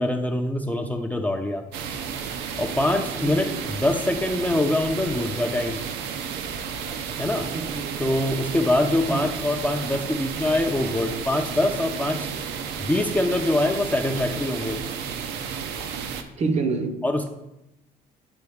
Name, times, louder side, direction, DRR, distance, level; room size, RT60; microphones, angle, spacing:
voice 1, 0.0-1.6 2.6-5.8 7.2-7.5 8.0-12.3 12.8-14.8 17.0-17.3, left 1 dB, 10° left, 0.5 m, -24 dB
sound 1, 1.7-16.2, right 7 dB, 80° right, 0.6 m, -32 dB
voice 2, 3.2-3.8 7.5-8.1 9.1-9.3 16.4-17.0, right 4 dB, 40° right, 0.7 m, -28 dB
7.9 x 3.8 x 3.5 m
cardioid pair, 110°, 17 cm